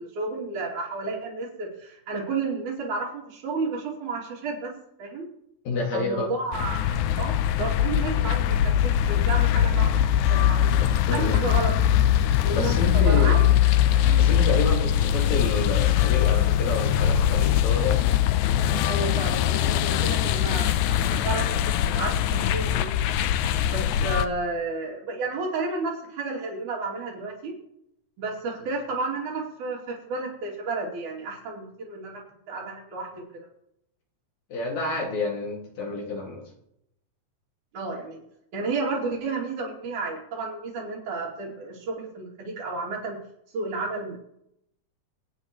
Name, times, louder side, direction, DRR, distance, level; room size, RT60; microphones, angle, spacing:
voice 1, 0.0-4.7 5.0-5.3 5.9-10.7 11.1-11.7 12.4-13.4 14.0-14.2 18.8-22.9 23.7-27.6 28.2-33.5 37.7-38.2 38.5-43.2 43.5-44.2, right 3 dB, 75° right, -4 dB, 4.2 m, -32 dB
voice 2, 5.7-6.3 11.1-11.4 12.6-13.4 14.2-18.0 34.5-36.4, left 3 dB, 65° left, -1 dB, 3.5 m, -29 dB
sound 1, 6.5-24.3, left 10 dB, 80° left, 2.0 m, -22 dB
24.5 x 8.7 x 3.1 m, 0.77 s
omnidirectional pair, 3.5 m